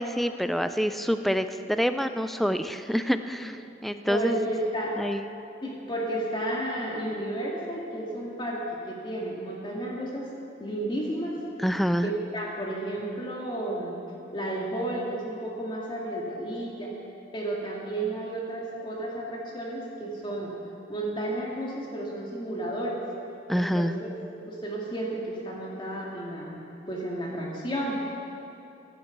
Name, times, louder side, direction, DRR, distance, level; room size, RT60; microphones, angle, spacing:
voice 1, 0.0-4.5 5.0-5.3 11.6-12.1 23.5-24.0, equal, ahead, 10 dB, 0.4 m, -27 dB
voice 2, 4.1-4.9 5.6-10.3 10.6-11.4 12.0-14.0 14.3-16.9 17.3-20.5 20.9-23.0 23.5-24.1 24.4-26.6 26.9-28.0, right 1 dB, 30° left, -3 dB, 2.1 m, -32 dB
14.0 x 11.0 x 8.1 m, 2.7 s
head